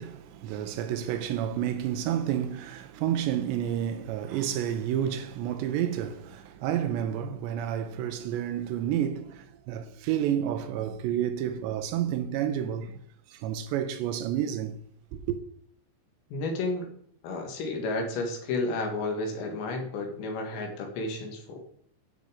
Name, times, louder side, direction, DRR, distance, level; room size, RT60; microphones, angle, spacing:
voice 1, 0.0-13.0 13.3-14.8 15.1-15.4, right 10 dB, 80° right, 2.9 m, -30 dB
voice 2, 16.3-16.9 17.2-21.6, left 2 dB, 75° left, 4.0 m, -32 dB
13.0 x 5.8 x 5.0 m
omnidirectional pair, 5.3 m